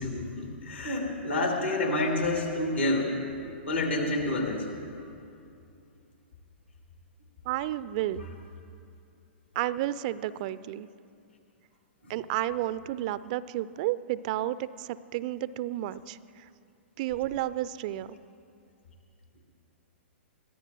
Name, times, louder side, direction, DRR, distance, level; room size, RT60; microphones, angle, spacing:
voice 1, 0.0-3.2 3.7-4.7 12.0-12.1, left 2 dB, 75° left, 0 dB, 3.0 m, -28 dB
voice 2, 7.5-8.3 9.6-10.9 12.1-16.5 17.0-18.2, right 14 dB, 40° right, 17 dB, 0.4 m, -31 dB
22.5 x 14.5 x 3.0 m, 2.5 s
figure-of-eight pair, 110°, 6 cm